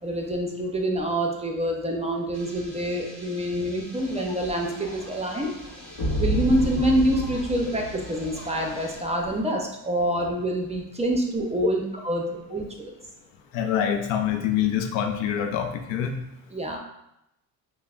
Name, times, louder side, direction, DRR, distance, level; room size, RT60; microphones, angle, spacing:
voice 1, 0.0-5.5 6.2-12.9 16.5-16.8, right 1 dB, 15° right, 1 dB, 0.5 m, -26 dB
sound 1, 2.3-9.0, equal, ahead, 1.4 m, -48 dB
sound 2, 3.9-9.4, left 1 dB, 40° left, 1.2 m, -45 dB
sound 3, 6.0-8.6, equal, 60° left, 1.0 m, -29 dB
voice 2, 13.5-16.2, left 9 dB, 80° left, 6 dB, 0.6 m, -25 dB
5.5 x 2.1 x 2.4 m, 0.83 s
cardioid pair, 85°, 45 cm